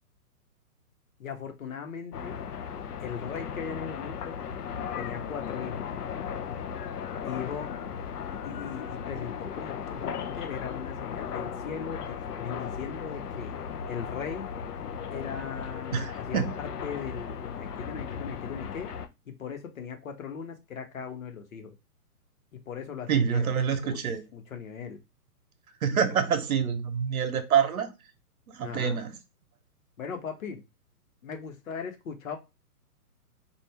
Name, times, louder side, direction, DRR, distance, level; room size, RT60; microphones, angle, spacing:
voice 1, 1.2-2.4 3.0-4.4 4.9-5.9 7.2-7.7 8.4-13.5 13.9-14.5 15.1-18.9 19.3-21.7 22.5-23.5 24.3-25.0 28.6-29.0 30.0-30.6 31.2-32.4, left 7 dB, 60° left, 1.2 m, -38 dB
sound 1, 2.1-19.1, left 7 dB, 80° left, 0.8 m, -36 dB
voice 2, 15.9-16.5 23.1-24.2 25.8-27.9 28.5-29.1, right 7 dB, 65° right, 1.1 m, -26 dB
4.6 x 2.6 x 3.3 m
hypercardioid pair, 160°, 46 cm